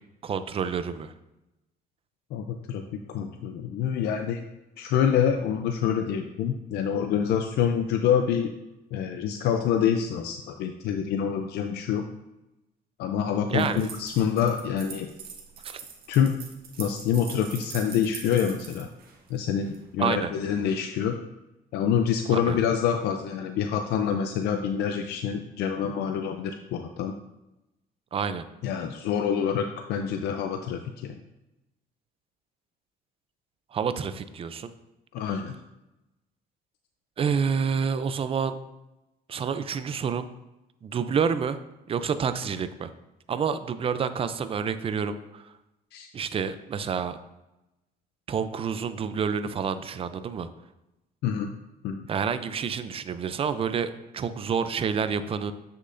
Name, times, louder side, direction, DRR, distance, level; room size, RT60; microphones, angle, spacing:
voice 1, 0.2-1.1 13.5-13.8 15.6-15.8 20.0-20.3 22.3-22.6 28.1-28.4 33.7-34.7 37.2-38.6 39.3-40.3 40.8-41.6 41.9-42.9 43.3-45.4 46.1-47.2 48.3-50.5 52.1-55.5, right 6 dB, 35° right, 12 dB, 0.5 m, -28 dB
voice 2, 2.3-2.8 3.1-4.4 4.8-8.5 8.9-12.0 13.0-15.1 16.1-16.4 16.8-18.9 19.3-21.2 21.7-27.1 28.6-31.2 35.1-35.6 45.9-46.1 51.2-51.5 51.8-52.0, left 8 dB, 75° left, 6 dB, 0.5 m, -26 dB
sound 1, 13.6-19.8, right 6 dB, 65° right, 1.6 m, -43 dB
7.6 x 6.6 x 2.6 m, 0.95 s
cardioid pair, 110°, 17 cm